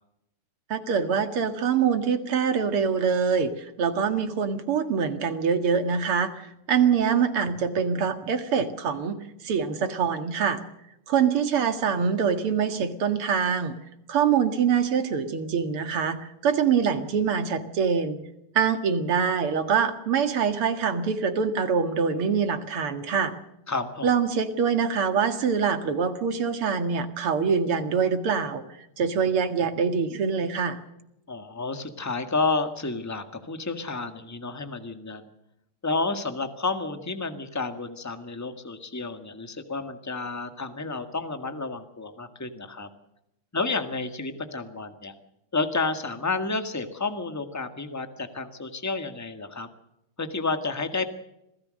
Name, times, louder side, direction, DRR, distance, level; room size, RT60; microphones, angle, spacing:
voice 1, 0.7-10.6 11.1-13.8 14.1-18.2 18.6-23.3 24.0-28.6 29.0-30.8, right 6 dB, 85° right, 8 dB, 2.8 m, -24 dB
voice 2, 23.7-24.1 31.3-35.3 35.8-42.9 43.5-45.1 45.5-49.7 50.2-51.1, left 3 dB, 10° left, 8 dB, 1.5 m, -30 dB
26.5 x 17.0 x 6.5 m, 0.86 s
omnidirectional pair, 2.4 m